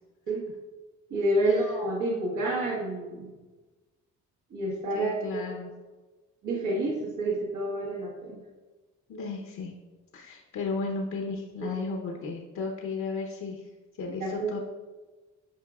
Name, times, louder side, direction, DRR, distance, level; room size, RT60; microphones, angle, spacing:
voice 1, 1.1-3.3 4.5-5.1 6.4-8.4 11.6-11.7 14.2-14.5, right 1 dB, 80° right, -5 dB, 1.4 m, -28 dB
voice 2, 4.9-5.7 9.1-9.7 10.1-13.7 14.0-14.6, left 4 dB, 75° left, 0 dB, 0.9 m, -34 dB
9.2 x 5.0 x 2.4 m, 1.2 s
cardioid pair, 90°, 30 cm